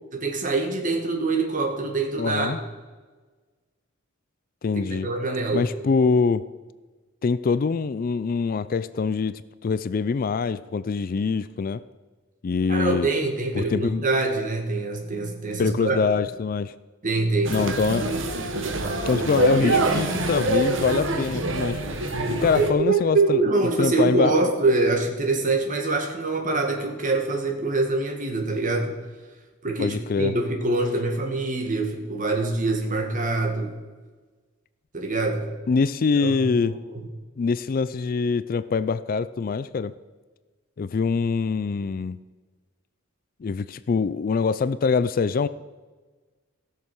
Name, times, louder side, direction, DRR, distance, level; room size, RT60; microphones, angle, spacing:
voice 1, 0.2-2.6 5.0-5.7 12.7-16.0 17.0-17.6 22.3-28.9 29.6-33.7 34.9-35.5 36.2-36.4 36.6-37.0, right 3 dB, 40° right, 3 dB, 2.0 m, -24 dB
voice 2, 2.2-2.6 4.6-5.1 5.5-6.5 7.2-11.8 12.4-13.1 13.5-14.1 15.6-16.7 17.5-18.2 19.1-21.8 22.4-23.4 23.8-24.5 29.8-30.3 35.7-36.7 37.4-39.9 40.8-42.2 43.4-45.5, left 5 dB, 45° left, 15 dB, 0.3 m, -24 dB
sound 1, 17.5-22.7, right 2 dB, 65° right, 1.4 m, -25 dB
16.5 x 6.6 x 6.2 m, 1.3 s
head